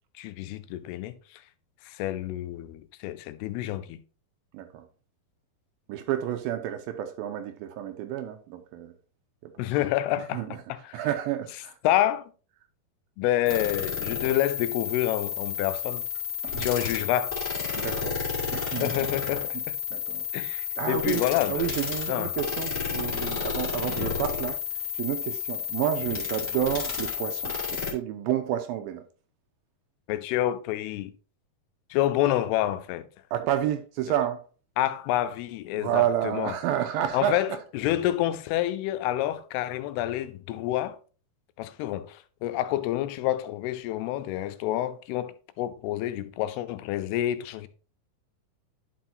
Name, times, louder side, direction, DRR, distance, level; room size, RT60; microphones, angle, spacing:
voice 1, 0.2-1.4 1.9-4.0 9.6-10.4 10.7-11.0 11.8-12.3 13.2-16.1 16.6-17.4 18.8-19.8 20.3-21.7 22.1-22.3 23.9-24.1 30.1-31.1 31.9-33.1 34.8-36.5 37.1-37.5 37.7-41.0 41.6-47.7, left 13 dB, 85° left, 2.6 m, -28 dB
voice 2, 4.5-4.9 5.9-8.9 9.4-9.5 10.3-10.6 10.9-11.8 16.4-16.7 17.7-18.2 18.5-18.9 19.9-20.5 20.8-21.2 21.5-29.0 33.3-34.4 35.7-37.6, right 11 dB, 80° right, 2.2 m, -30 dB
sound 1, 13.5-27.9, left 7 dB, 35° left, 1.2 m, -31 dB
10.5 x 5.5 x 2.6 m
omnidirectional pair, 4.5 m